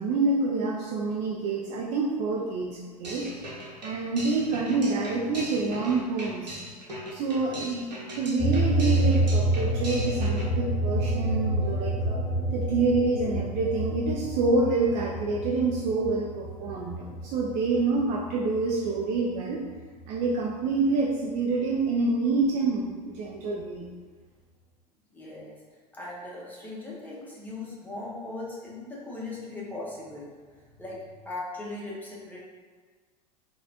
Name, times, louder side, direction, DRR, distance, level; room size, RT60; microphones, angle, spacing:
voice 1, 0.0-3.3 3.8-6.6 7.1-12.2 12.5-19.6 20.1-23.9, right 3 dB, 35° right, -2 dB, 0.4 m, -27 dB
sound 1, 3.0-10.5, equal, 80° right, 0.8 m, -39 dB
sound 2, 8.4-19.3 19.7-21.1, right 1 dB, 35° left, 0.9 m, -28 dB
voice 2, 25.1-25.6 25.9-30.3 30.8-31.0 31.2-32.4, left 2 dB, 10° left, -6 dB, 0.9 m, -38 dB
3.9 x 2.3 x 2.7 m, 1.5 s
figure-of-eight pair, 85°, 21 cm